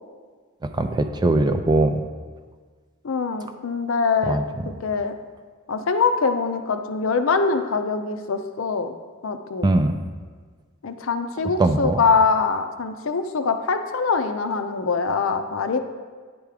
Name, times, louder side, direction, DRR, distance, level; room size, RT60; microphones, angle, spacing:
voice 1, 0.6-2.0 4.3-4.4 9.6-9.9 11.6-12.0, right 2 dB, 20° right, 7 dB, 0.4 m, -20 dB
voice 2, 3.0-5.1 5.7-8.9 9.2-9.7 10.8-15.8, left 4 dB, 65° left, 8 dB, 0.5 m, -23 dB
10.0 x 3.5 x 4.9 m, 1.5 s
head